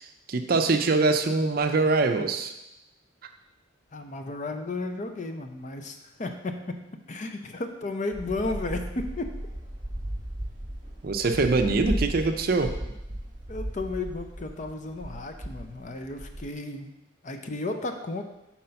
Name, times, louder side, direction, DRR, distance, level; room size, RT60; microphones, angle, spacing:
voice 1, 0.0-2.5 11.0-12.8, right 3 dB, 50° right, 6 dB, 0.5 m, -24 dB
voice 2, 3.9-6.8 7.1-9.3 13.5-17.0 17.2-18.2, left 2 dB, 40° left, 6 dB, 0.5 m, -33 dB
sound 1, 8.1-16.5, right 1 dB, 25° right, 0.9 m, -36 dB
5.4 x 4.3 x 5.7 m, 0.90 s
head